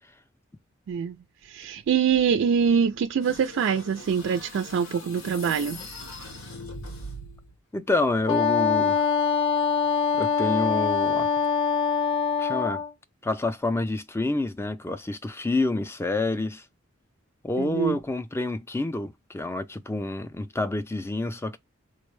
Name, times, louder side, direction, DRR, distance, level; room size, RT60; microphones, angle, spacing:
voice 1, 1.4-5.8 17.6-18.0, right 7 dB, 65° right, 0.3 m, -24 dB
sound 1, 3.2-7.6, left 1 dB, 90° left, 1.0 m, -41 dB
voice 2, 7.7-9.0 10.1-11.3 12.4-12.8 13.2-16.6 17.4-21.6, left 2 dB, 10° left, 0.4 m, -28 dB
Wind instrument woodwind instrument, 8.3-12.9, left 6 dB, 55° left, 0.6 m, -24 dB
4.3 x 2.1 x 3.1 m
head